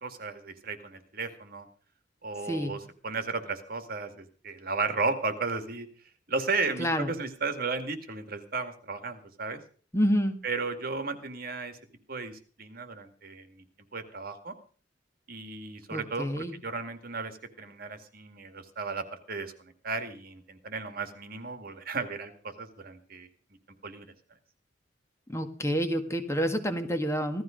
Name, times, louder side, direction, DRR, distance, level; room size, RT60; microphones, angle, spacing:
voice 1, 0.0-1.7 2.2-5.9 6.3-9.6 10.4-11.8 12.1-13.7 13.9-14.5 15.3-23.3 23.8-24.1, right 4 dB, 55° right, 8 dB, 2.2 m, -34 dB
voice 2, 6.8-7.1 9.9-10.4 15.9-16.6 25.3-27.4, equal, 15° left, 6 dB, 1.7 m, -28 dB
16.5 x 13.5 x 5.2 m, 0.43 s
head